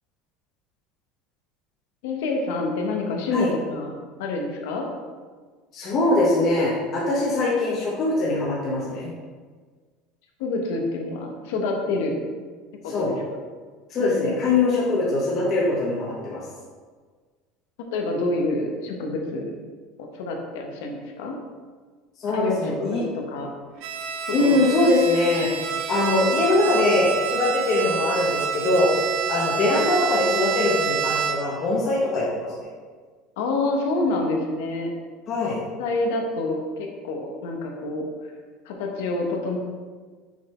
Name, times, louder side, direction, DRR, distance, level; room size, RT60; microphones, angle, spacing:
voice 1, 2.0-3.9 4.2-4.9 10.4-12.2 12.8-13.2 14.0-14.3 17.9-19.5 20.0-21.3 22.2-23.5 24.4-24.6 33.4-34.9 35.4-38.1 38.6-39.6, left 2 dB, 85° left, 1 dB, 1.2 m, -27 dB
voice 2, 5.7-9.1 12.9-13.1 13.9-16.4 22.2-23.0 24.3-25.5 25.9-28.9 29.3-32.7 35.3-35.6, left 2 dB, 35° left, -5 dB, 1.1 m, -22 dB
Bowed string instrument, 23.8-31.6, right 7 dB, 55° right, 0.7 m, -28 dB
6.2 x 4.1 x 4.4 m, 1.5 s
cardioid pair, 155°, 0 cm